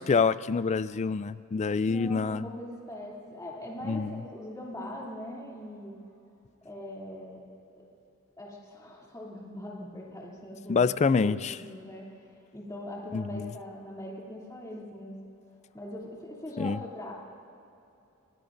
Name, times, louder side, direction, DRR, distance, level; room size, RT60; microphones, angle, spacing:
voice 1, 0.0-2.4 3.8-4.2 10.7-11.6 13.1-13.5 16.6-16.8, left 5 dB, 30° left, 16 dB, 0.3 m, -26 dB
voice 2, 1.8-5.9 6.6-7.4 7.8-7.9 8.4-10.9 11.2-12.0 12.5-15.2 15.7-17.1, left 1 dB, 15° left, -4 dB, 2.9 m, -41 dB
25.5 x 19.5 x 2.6 m, 2.8 s
head